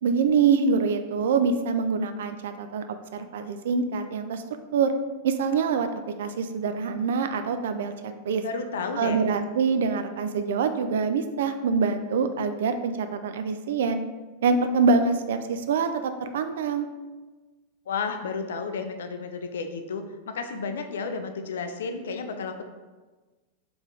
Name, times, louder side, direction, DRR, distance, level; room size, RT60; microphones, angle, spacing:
voice 1, 0.0-4.4 4.7-4.9 5.2-5.9 6.2-8.4 9.0-14.0 14.4-16.9, right 5 dB, 60° right, 9 dB, 0.3 m, -25 dB
voice 2, 8.4-9.2 17.9-22.6, left 5 dB, 60° left, 6 dB, 0.4 m, -32 dB
3.6 x 3.3 x 3.7 m, 1.3 s
figure-of-eight pair, 90°, 0 cm